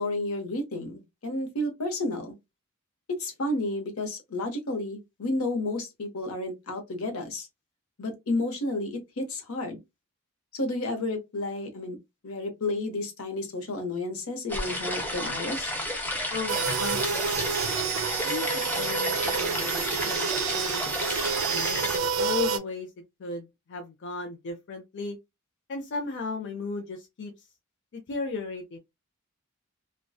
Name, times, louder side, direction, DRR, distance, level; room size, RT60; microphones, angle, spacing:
voice 1, 0.0-2.3 3.2-7.5 8.0-9.8 10.5-12.0 12.2-15.7, left 2 dB, 80° left, 0.8 m, -31 dB
sound 1, 14.5-22.0, left 1 dB, 10° left, 0.5 m, -32 dB
voice 2, 16.3-17.5 18.2-18.5 18.7-21.0 21.5-22.9 23.2-25.2 25.7-27.4 27.9-28.8, left 3 dB, 60° left, 0.5 m, -35 dB
sound 2, 16.5-22.6, right 6 dB, 75° right, 0.4 m, -29 dB
2.6 x 2.2 x 2.2 m
head